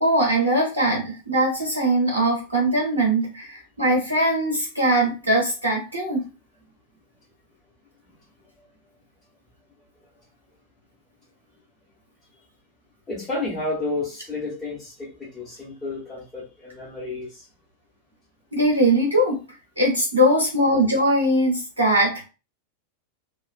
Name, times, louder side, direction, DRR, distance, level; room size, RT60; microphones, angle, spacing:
voice 1, 0.0-6.2 18.5-19.4 19.8-22.2, right 1 dB, 80° right, -2 dB, 0.8 m, -21 dB
voice 2, 13.1-17.4, left 2 dB, 15° left, -9 dB, 1.1 m, -31 dB
2.4 x 2.4 x 2.3 m, 0.31 s
figure-of-eight pair, 90°, 0 cm